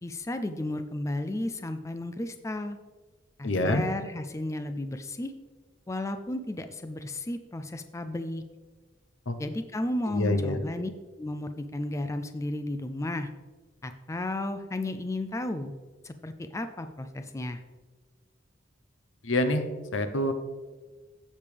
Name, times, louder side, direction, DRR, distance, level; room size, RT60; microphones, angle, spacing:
voice 1, 0.0-2.8 3.4-5.3 5.9-8.4 9.4-10.9 11.2-13.3 13.8-15.7 16.0-17.6, left 1 dB, 15° left, 8 dB, 0.3 m, -33 dB
voice 2, 3.4-3.8 9.3-9.4 10.1-10.6 19.2-19.6 19.9-20.3, left 1 dB, 90° left, 8 dB, 0.9 m, -26 dB
15.0 x 5.3 x 3.4 m, 1.3 s
head